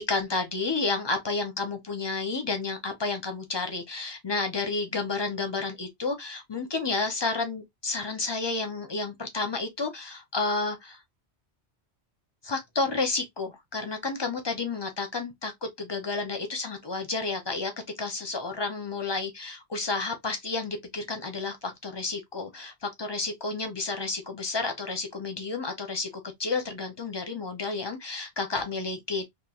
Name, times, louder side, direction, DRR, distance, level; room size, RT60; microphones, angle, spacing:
voice 1, 0.0-11.0 12.4-17.7 18.0-26.1 26.4-29.2, left 3 dB, 30° left, 0.5 m, -31 dB
3.1 x 2.4 x 2.3 m
omnidirectional pair, 1.1 m